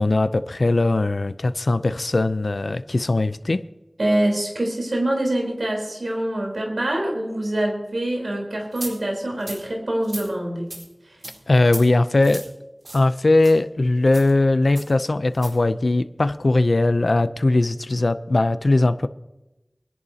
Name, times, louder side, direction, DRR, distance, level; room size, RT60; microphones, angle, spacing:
voice 1, 0.0-3.6 11.5-12.4 12.9-19.1, left 2 dB, 75° left, 12 dB, 0.5 m, -20 dB
voice 2, 4.0-10.7 11.0-11.2, right 1 dB, 85° right, 0 dB, 3.9 m, -25 dB
sound 1, 8.8-8.9 9.4-9.6 10.0-10.3 10.7-10.8 11.2-11.4 11.7-11.8 12.2-12.5 12.8-13.1 13.4-13.5 14.1-14.3 14.8-14.9 15.3-15.5, right 1 dB, 65° right, 4.4 m, -35 dB
24.0 x 11.0 x 2.8 m, 1.0 s
wide cardioid pair, 40°, 0 cm